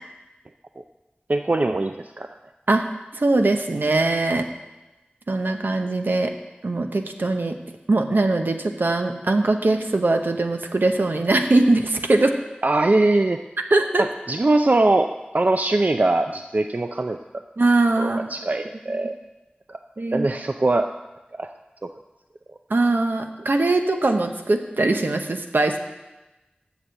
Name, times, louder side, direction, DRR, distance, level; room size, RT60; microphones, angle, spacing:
voice 1, 1.3-2.3 12.6-13.4 14.0-17.2 18.0-19.1 19.7-19.8 20.1-20.9 21.3-21.5 21.8-21.9, right 2 dB, 50° right, 6 dB, 0.4 m, -21 dB
voice 2, 3.2-4.5 5.3-6.3 6.6-7.6 7.9-12.3 13.7-14.0 17.6-18.3 20.0-20.3 22.7-25.8, right 2 dB, 75° right, 5 dB, 0.9 m, -21 dB
7.2 x 6.8 x 7.6 m, 1.1 s
wide cardioid pair, 55°, 3 cm